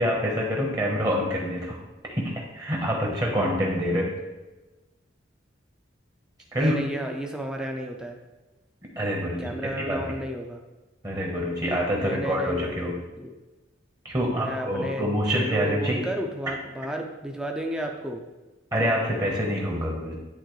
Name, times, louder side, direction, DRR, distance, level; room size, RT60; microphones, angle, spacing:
voice 1, 0.0-1.8 2.0-4.1 6.5-6.8 9.0-9.5 9.8-10.0 11.0-13.0 14.0-16.0 18.7-20.2, equal, 20° right, -1 dB, 1.1 m, -26 dB
voice 2, 6.6-8.2 9.4-10.6 12.0-13.3 14.4-18.2, right 1 dB, 5° right, 2 dB, 0.6 m, -33 dB
10.5 x 3.7 x 3.2 m, 1.1 s
head